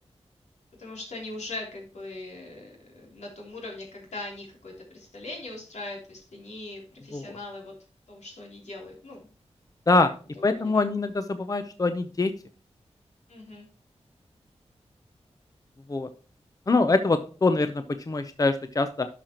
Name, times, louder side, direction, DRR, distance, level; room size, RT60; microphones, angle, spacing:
voice 1, 0.8-7.7 8.1-9.3 10.3-10.9 13.3-13.7, left 2 dB, 85° left, -1 dB, 3.2 m, -40 dB
voice 2, 10.4-12.3 15.9-16.1 16.7-19.1, left 3 dB, 30° left, 9 dB, 0.6 m, -24 dB
11.5 x 5.9 x 2.9 m, 0.39 s
wide cardioid pair, 95°, 11 cm